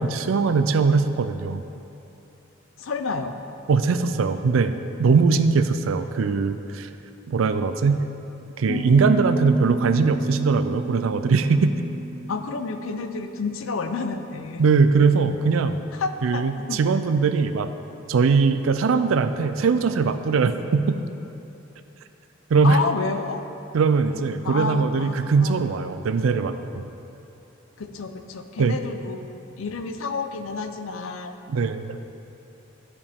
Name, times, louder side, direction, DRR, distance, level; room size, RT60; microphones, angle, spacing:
voice 1, 0.0-1.6 3.7-4.7 5.0-6.9 7.3-8.0 8.6-11.7 14.6-15.8 16.2-17.7 18.1-21.0 22.5-22.8 23.7-26.5 28.6-28.8 31.5-32.0, right 4 dB, 85° right, 10 dB, 0.4 m, -21 dB
voice 2, 2.8-3.3 12.3-14.6 15.9-16.8 22.6-23.4 24.4-25.8 27.8-29.2 29.6-31.3, left 4 dB, 85° left, 7 dB, 0.5 m, -30 dB
Piano, 8.7-14.3, right 2 dB, 40° left, 0.6 m, -32 dB
12.0 x 5.0 x 3.5 m, 2.8 s
head